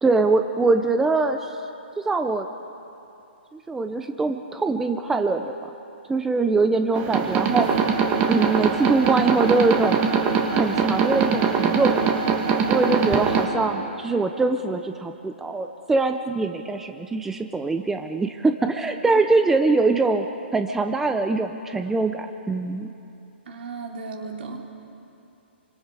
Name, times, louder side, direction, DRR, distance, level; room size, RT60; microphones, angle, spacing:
voice 1, 0.0-1.6 2.1-2.5 3.5-5.5 6.1-7.9 8.3-10.0 10.5-12.0 12.7-20.3 20.5-22.9, right 3 dB, 5° right, 6 dB, 0.6 m, -23 dB
sound 1, 6.9-13.5, right 6 dB, 20° right, 1.9 m, -22 dB
voice 2, 23.5-24.7, right 4 dB, 60° right, 1 dB, 3.5 m, -35 dB
30.0 x 24.5 x 4.8 m, 2.8 s
hypercardioid pair, 160°, 6 cm